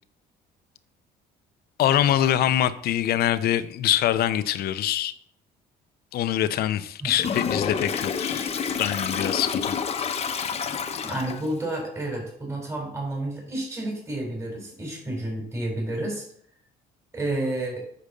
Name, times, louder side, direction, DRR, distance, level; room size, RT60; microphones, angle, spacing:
voice 1, 1.8-5.1 6.1-8.5 8.8-9.8, left 11 dB, 65° left, 0.7 m, -24 dB
Toilet flush, 7.2-11.5, left 6 dB, 40° left, 0.9 m, -28 dB
voice 2, 11.0-16.3 17.1-17.8, right 1 dB, 15° right, 3.8 m, -30 dB
8.4 x 5.1 x 6.7 m
cardioid pair, 110°, 17 cm